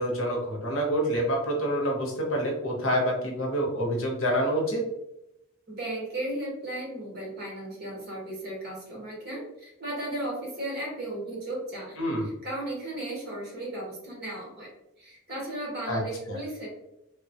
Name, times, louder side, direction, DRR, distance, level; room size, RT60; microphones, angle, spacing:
voice 1, 0.0-4.8 12.0-12.3 15.9-16.0 16.3-16.4, equal, 70° left, -1 dB, 0.8 m, -27 dB
voice 2, 5.7-12.0 12.2-14.7 15.0-16.7, right 1 dB, 50° right, -3 dB, 1.1 m, -35 dB
2.9 x 2.2 x 2.7 m, 0.88 s
head